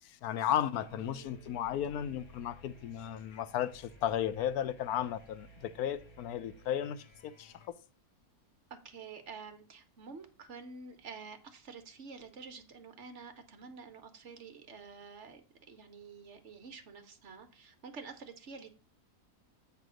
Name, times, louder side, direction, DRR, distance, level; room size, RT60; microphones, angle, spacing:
voice 1, 0.2-7.7, left 10 dB, 90° left, 1.1 m, -34 dB
sound 1, 0.7-7.7, left 1 dB, 25° left, 0.7 m, -57 dB
voice 2, 0.9-1.8 8.7-18.7, right 5 dB, 55° right, 1.2 m, -49 dB
8.5 x 3.5 x 6.2 m
omnidirectional pair, 1.5 m